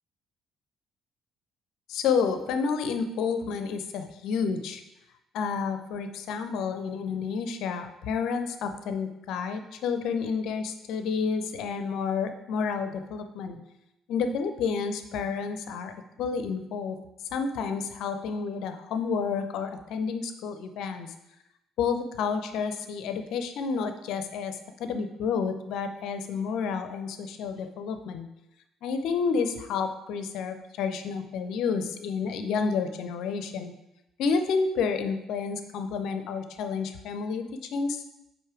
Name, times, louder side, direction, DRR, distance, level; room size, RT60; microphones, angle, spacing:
voice 1, 1.9-4.8 5.3-13.6 14.1-17.0 17.3-21.1 21.8-28.3 28.8-33.7 34.2-38.0, left 5 dB, 60° left, 8 dB, 0.6 m, -30 dB
5.5 x 4.3 x 4.8 m, 0.88 s
figure-of-eight pair, 50°, 0 cm